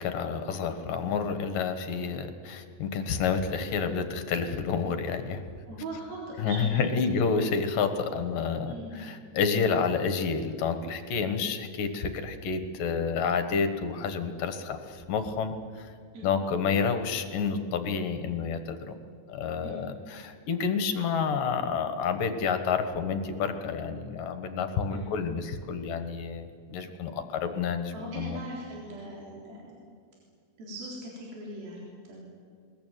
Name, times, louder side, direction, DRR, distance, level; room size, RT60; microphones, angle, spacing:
voice 1, 0.0-5.4 6.4-15.9 16.2-18.9 19.3-28.4, left 5 dB, 65° left, 8 dB, 2.8 m, -29 dB
voice 2, 5.7-7.3 8.7-9.0 16.1-16.4 19.6-19.9 24.9-25.1 27.9-29.7 30.6-32.2, right 1 dB, 65° right, -3 dB, 5.6 m, -40 dB
21.5 x 21.0 x 9.3 m, 2.2 s
omnidirectional pair, 4.5 m